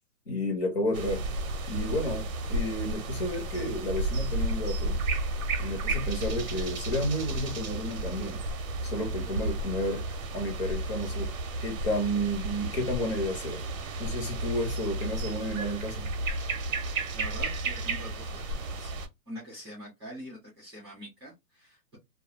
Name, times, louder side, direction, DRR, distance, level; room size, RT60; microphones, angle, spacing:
voice 1, 0.3-1.2 1.7-5.0 5.6-8.4 8.8-10.0 10.3-11.3 11.6-13.6 14.0-16.1, equal, 40° left, 0.8 m, -31 dB
sound 1, 0.9-19.1, right 2 dB, 60° right, 0.6 m, -32 dB
voice 2, 17.1-18.9 19.3-22.0, equal, 15° right, 0.6 m, -44 dB
2.3 x 2.1 x 2.7 m
hypercardioid pair, 170°, 49 cm